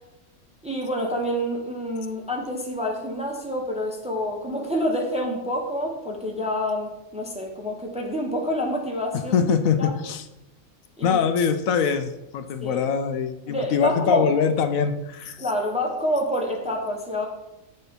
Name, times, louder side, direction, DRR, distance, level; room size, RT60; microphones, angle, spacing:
voice 1, 0.6-9.5 9.8-9.9 11.0-11.2 12.6-12.9 13.5-14.3 15.4-17.3, equal, 5° right, 0 dB, 0.8 m, -27 dB
voice 2, 9.3-10.2 11.0-15.4, left 6 dB, 75° left, 9 dB, 1.0 m, -23 dB
7.8 x 4.3 x 5.2 m, 0.95 s
omnidirectional pair, 1.5 m